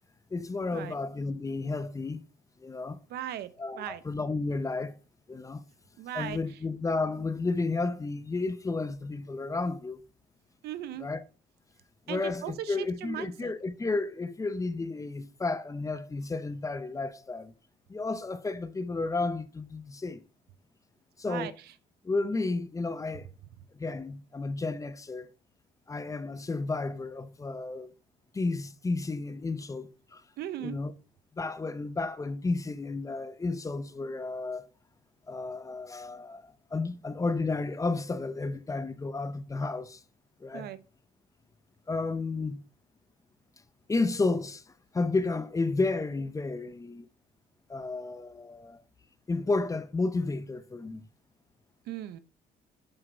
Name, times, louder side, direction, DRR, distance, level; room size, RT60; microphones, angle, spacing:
voice 1, 0.3-2.2 2.6-3.0 3.6-5.0 5.3-5.6 6.1-10.0 11.0-11.2 12.1-17.5 17.9-20.2 21.2-21.5 22.0-23.3 23.7-25.3 25.9-27.9 28.3-30.2 30.6-30.9 31.3-34.7 35.3-40.0 40.4-40.7 41.9-42.6 43.9-44.6 44.9-47.1 47.7-48.8 49.3-51.0, left 3 dB, 20° left, 0.7 m, -32 dB
voice 2, 3.1-3.5 3.7-4.0 6.0-6.4 10.6-11.1 12.1-13.5 21.3-21.5 30.4-30.8 40.5-40.8 51.9-52.2, right 11 dB, 70° right, 0.8 m, -37 dB
7.8 x 6.0 x 4.4 m
cardioid pair, 110°, 17 cm